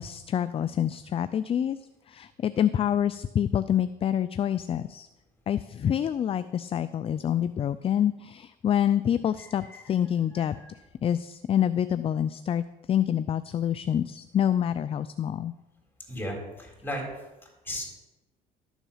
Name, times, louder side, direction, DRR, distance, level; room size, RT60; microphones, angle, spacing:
voice 1, 0.0-1.8 2.1-5.1 5.5-10.6 11.0-15.5, left 9 dB, 35° left, 14 dB, 0.4 m, -27 dB
voice 2, 9.4-9.8 10.4-10.7 16.1-17.1 17.6-17.8, equal, 10° left, 0 dB, 3.8 m, -36 dB
12.5 x 7.2 x 5.6 m, 1.1 s
cardioid pair, 110°, 17 cm